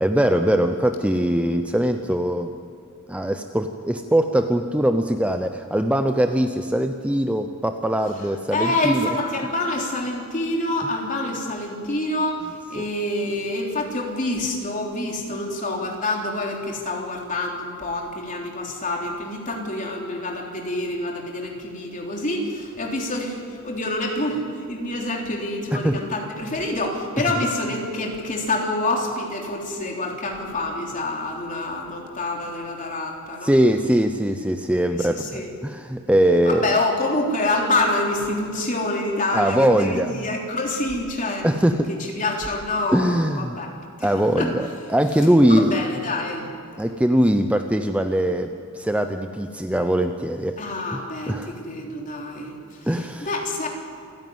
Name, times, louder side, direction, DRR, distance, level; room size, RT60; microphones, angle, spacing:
voice 1, 0.0-2.5 3.1-9.1 12.8-12.9 25.7-26.0 33.4-36.7 39.3-40.1 41.4-41.9 42.9-43.6 44.0-45.8 46.8-48.5 48.7-50.6 50.9-51.0 51.3-51.6 52.9-53.3, right 1 dB, 5° right, 6 dB, 0.7 m, -21 dB
voice 2, 8.5-33.5 35.0-35.5 36.5-41.5 42.2-43.7 44.0-44.1 44.4-44.5 45.5-46.5 50.6-53.7, left 2 dB, 35° left, 0 dB, 3.5 m, -27 dB
27.5 x 10.5 x 9.5 m, 2.5 s
head